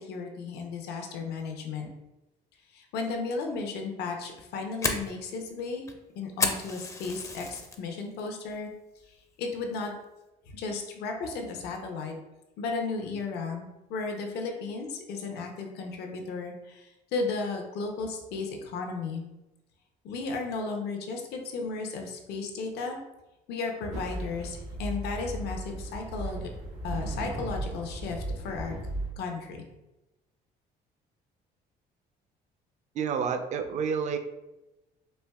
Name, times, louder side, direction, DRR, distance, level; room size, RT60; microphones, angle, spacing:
voice 1, 0.0-1.9 2.7-5.9 6.2-8.7 9.0-9.9 10.5-12.1 12.6-19.2 20.0-23.0 23.5-26.4 26.8-28.7 29.2-29.6, left 4 dB, 75° left, 3 dB, 0.6 m, -34 dB
Fire, 4.2-7.8 8.2-8.6 9.0-9.1 9.6-10.0, left 3 dB, 20° left, 0.4 m, -32 dB
sound 1, 23.9-29.1, right 1 dB, 80° right, 1.4 m, -36 dB
voice 2, 33.0-34.2, right 6 dB, 45° right, 7 dB, 0.4 m, -29 dB
4.3 x 2.7 x 2.2 m, 1.0 s
cardioid pair, 110°, 17 cm